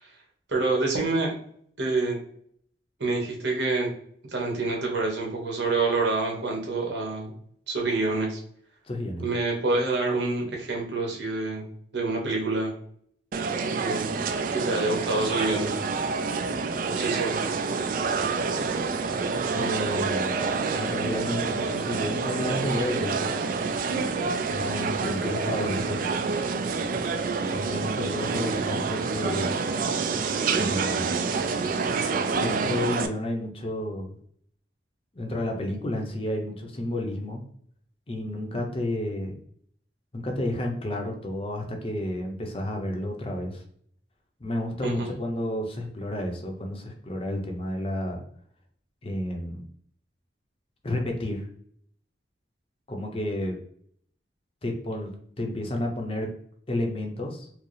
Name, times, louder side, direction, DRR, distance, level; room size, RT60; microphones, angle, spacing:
voice 1, 0.5-1.3 1.8-2.2 3.0-3.9 4.3-7.3 7.7-8.4 9.2-11.6 11.9-12.7 13.7-14.1 14.5-15.7 16.9-17.4 25.0-25.9 44.8-45.1, right 3 dB, 80° right, 0 dB, 1.1 m, -27 dB
voice 2, 8.9-9.3 19.5-20.4 20.7-23.3 24.5-26.1 27.5-29.6 30.6-31.2 32.3-34.1 35.1-37.4 38.1-39.4 40.1-43.6 44.4-48.2 49.0-49.7 50.8-51.5 52.9-53.6 54.6-55.1 55.4-56.3 56.7-57.5, left 1 dB, 30° left, 2 dB, 0.6 m, -31 dB
sound 1, 13.3-33.1, right 4 dB, 50° right, 0.3 m, -27 dB
4.6 x 2.0 x 3.1 m, 0.63 s
head